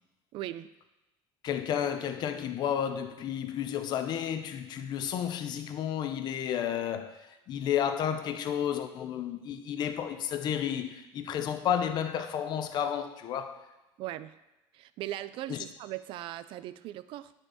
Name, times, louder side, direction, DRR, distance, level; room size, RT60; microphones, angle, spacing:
voice 1, 0.3-0.7 14.0-14.4 14.7-17.3, right 14 dB, 55° right, 0.4 m, -39 dB
voice 2, 1.4-13.6 15.5-15.6, left 9 dB, 40° left, 0.6 m, -32 dB
10.5 x 4.5 x 4.8 m
cardioid pair, 160°, 11 cm